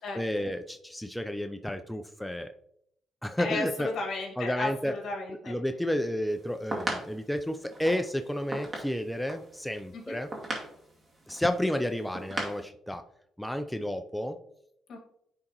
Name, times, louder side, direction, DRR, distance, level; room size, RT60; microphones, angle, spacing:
voice 1, 0.1-2.5 3.2-3.9 4.4-4.9 5.5-10.3 11.3-13.0 13.4-14.4, left 1 dB, 5° left, 7 dB, 0.4 m, -31 dB
voice 2, 3.4-5.5 9.9-10.2 14.9-15.0, left 3 dB, 65° left, 1 dB, 1.8 m, -34 dB
sound 1, 6.3-12.6, right 2 dB, 30° right, 2.2 m, -38 dB
9.7 x 3.8 x 2.9 m, 0.73 s
cardioid pair, 90°, 0 cm